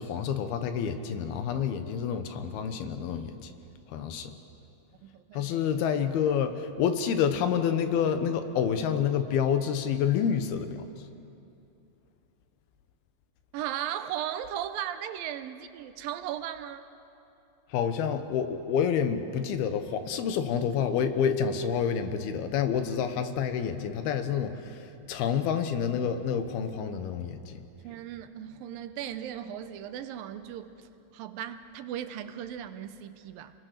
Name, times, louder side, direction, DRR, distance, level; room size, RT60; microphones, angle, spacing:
voice 1, 0.0-3.5 3.9-4.3 5.3-10.8 17.7-27.6, left 7 dB, 85° left, 9 dB, 3.1 m, -28 dB
voice 2, 5.0-5.7 13.5-16.9 27.8-30.9 31.1-33.5, right 10 dB, 80° right, 10 dB, 2.4 m, -37 dB
28.0 x 21.5 x 6.6 m, 2.8 s
omnidirectional pair, 4.3 m